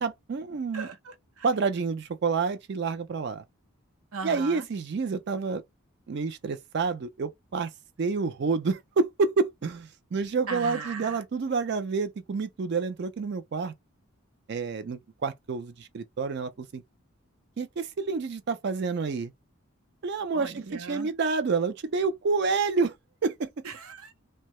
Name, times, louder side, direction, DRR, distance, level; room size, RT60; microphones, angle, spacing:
voice 1, 0.0-0.9 1.4-3.4 4.2-5.6 6.1-7.7 8.0-13.7 14.5-16.8 17.6-19.3 20.0-22.9 23.2-23.5, right 4 dB, 50° right, 0.4 m, -28 dB
voice 2, 0.7-1.5 4.1-4.7 10.5-11.2 20.3-21.1 23.6-24.1, right 4 dB, 75° right, 0.7 m, -38 dB
2.7 x 2.2 x 3.0 m
head